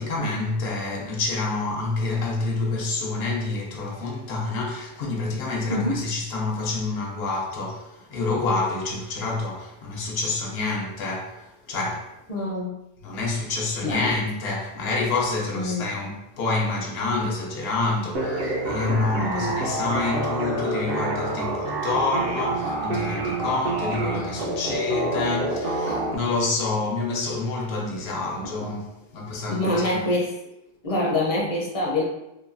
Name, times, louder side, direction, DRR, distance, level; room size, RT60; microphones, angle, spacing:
voice 1, 0.0-12.2 13.0-30.0, left 3 dB, 80° left, 0.9 m, -28 dB
voice 2, 5.7-6.0 12.3-12.8 13.8-14.1 15.5-15.9 19.2-19.6 29.5-30.3 30.8-32.0, left 1 dB, 45° left, 0.6 m, -25 dB
sound 1, 18.1-26.1, right 2 dB, 70° right, 0.8 m, -27 dB
2.9 x 2.3 x 2.4 m
omnidirectional pair, 1.0 m